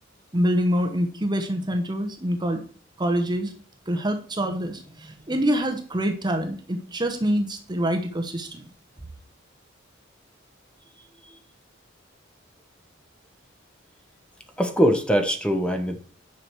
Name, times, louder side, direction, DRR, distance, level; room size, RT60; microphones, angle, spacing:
voice 1, 0.3-2.6 3.0-3.5 3.9-8.6, equal, 20° right, 5 dB, 1.0 m, -25 dB
voice 2, 14.6-16.0, equal, 5° left, 6 dB, 1.1 m, -22 dB
9.7 x 6.0 x 4.7 m, 0.41 s
head